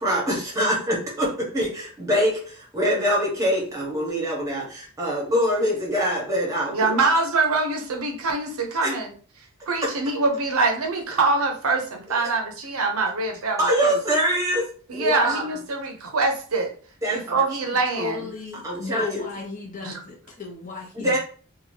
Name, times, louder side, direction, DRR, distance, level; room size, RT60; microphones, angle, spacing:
voice 1, 0.0-6.9 8.8-8.9 12.1-12.2 13.6-14.7 14.9-15.4 17.0-17.4 18.6-19.3 20.9-21.2, equal, 15° right, -4 dB, 1.1 m, -24 dB
voice 2, 6.7-9.1 9.7-14.0 14.9-16.7 17.1-18.2 19.8-20.0, right 3 dB, 75° right, 3 dB, 0.6 m, -24 dB
voice 3, 17.9-21.2, left 5 dB, 35° left, -1 dB, 0.8 m, -35 dB
2.8 x 2.3 x 3.1 m, 0.42 s
head